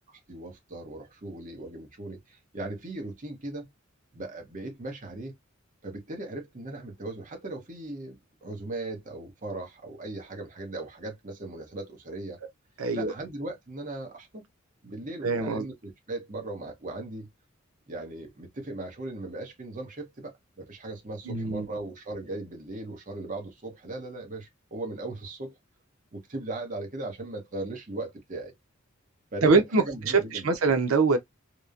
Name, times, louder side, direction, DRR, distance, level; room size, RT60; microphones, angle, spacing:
voice 1, 0.3-3.7 4.1-5.4 5.8-12.4 12.9-14.4 14.8-17.3 17.9-25.6 26.1-28.5 29.3-30.5, right 2 dB, 40° right, 0.9 m, -38 dB
voice 2, 12.8-13.1 15.2-15.6 21.3-21.7 29.4-31.2, right 4 dB, 90° right, 0.6 m, -23 dB
2.9 x 2.1 x 2.4 m
head